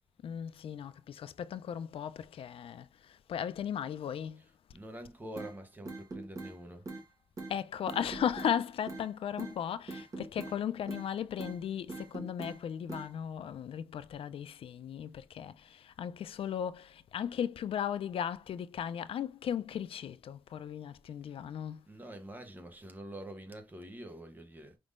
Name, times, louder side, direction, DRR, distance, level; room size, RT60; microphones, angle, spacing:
voice 1, 0.2-4.4 7.5-21.9, left 9 dB, 90° left, 0.4 m, -36 dB
voice 2, 4.4-6.9 21.9-24.8, right 1 dB, 20° right, 0.9 m, -46 dB
sound 1, 5.4-5.5 5.9-6.5 6.9-7.0 7.4-7.5 7.9-8.5 8.9-9.1 9.4-9.5 9.9-10.6 10.9-11.1 11.4-11.6 11.9-12.6 12.9-13.1, right 2 dB, 35° right, 1.4 m, -41 dB
4.9 x 3.6 x 2.4 m
wide cardioid pair, 165°, 9 cm